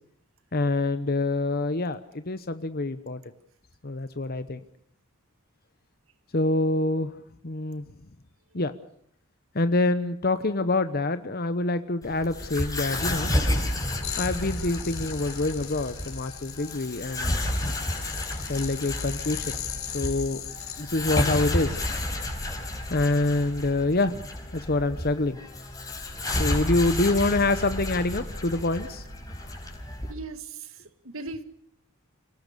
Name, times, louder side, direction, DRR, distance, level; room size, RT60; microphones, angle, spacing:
voice 1, 0.5-3.2 3.8-4.6 6.3-7.1 7.4-7.8 8.5-8.7 9.5-13.3 14.2-17.4 18.5-19.6 19.9-20.4 20.8-21.8 22.9-24.2 24.5-25.4 26.4-29.0, left 2 dB, 45° left, 11 dB, 1.0 m, -26 dB
sound 1, 12.0-30.1, left 1 dB, 15° left, 4.9 m, -31 dB
sound 2, 14.0-20.8, left 11 dB, 75° left, 3.8 m, -39 dB
voice 2, 30.1-31.4, right 3 dB, 70° right, 11 dB, 1.9 m, -38 dB
28.0 x 18.5 x 6.8 m, 0.68 s
head